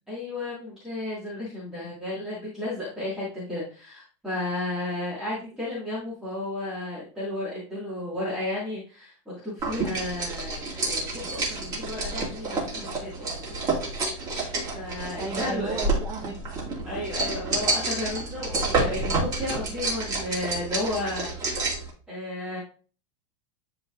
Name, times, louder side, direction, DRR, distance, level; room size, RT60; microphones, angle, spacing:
voice 1, 0.1-13.3 14.0-14.2 14.7-15.9 16.8-21.3 21.7-22.6, left 2 dB, 5° right, -10 dB, 2.1 m, -33 dB
sound 1, 9.6-21.9, right 2 dB, 20° right, 2.2 m, -29 dB
voice 2, 15.2-16.5, right 5 dB, 40° right, -4 dB, 1.6 m, -34 dB
11.0 x 4.0 x 2.5 m, 0.39 s
supercardioid pair, 175°, 15 cm